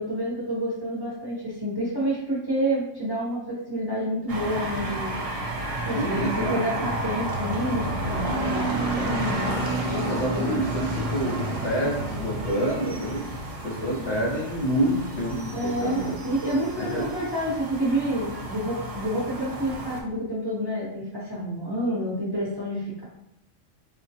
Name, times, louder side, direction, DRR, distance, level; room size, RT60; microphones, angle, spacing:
voice 1, 0.0-5.1 5.8-9.6 15.5-23.0, right 1 dB, 25° right, -7 dB, 0.7 m, -29 dB
sound 1, 4.3-20.0, right 1 dB, 55° right, 0.4 m, -31 dB
voice 2, 5.9-6.9 9.9-13.2 13.6-16.1 16.8-17.1, right 1 dB, 65° left, -3 dB, 1.1 m, -27 dB
4.1 x 2.1 x 2.7 m, 0.79 s
omnidirectional pair, 1.3 m